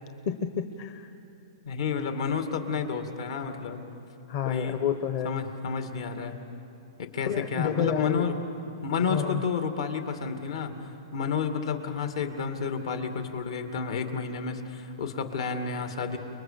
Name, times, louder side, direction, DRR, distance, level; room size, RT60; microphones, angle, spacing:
voice 1, 0.3-1.1 4.3-5.4 7.3-8.3 9.1-9.4, left 8 dB, 45° left, 7 dB, 1.0 m, -29 dB
voice 2, 1.6-3.8 4.4-4.8 5.2-6.3 7.0-8.3 8.7-10.7 11.1-16.2, left 5 dB, 75° left, 6 dB, 2.4 m, -30 dB
30.0 x 20.5 x 7.0 m, 2.9 s
hypercardioid pair, 145°, 3 cm